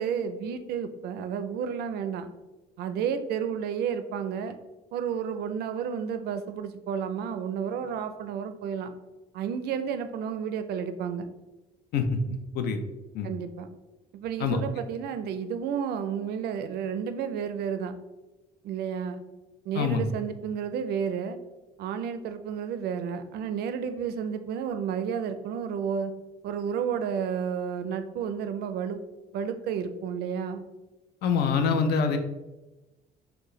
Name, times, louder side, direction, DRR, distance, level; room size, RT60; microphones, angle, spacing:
voice 1, 0.0-2.3 2.8-4.6 4.9-8.9 9.3-11.3 13.2-13.7 14.1-17.9 18.6-19.2 19.7-21.4 21.8-26.1 26.4-29.0 29.3-30.6, right 7 dB, 70° right, 9 dB, 0.4 m, -31 dB
voice 2, 11.9-12.8 13.1-13.3 14.4-14.6 19.7-20.1 31.2-32.2, left 5 dB, 70° left, 7 dB, 0.5 m, -25 dB
4.5 x 2.2 x 3.1 m, 1.1 s
cardioid pair, 110°, 17 cm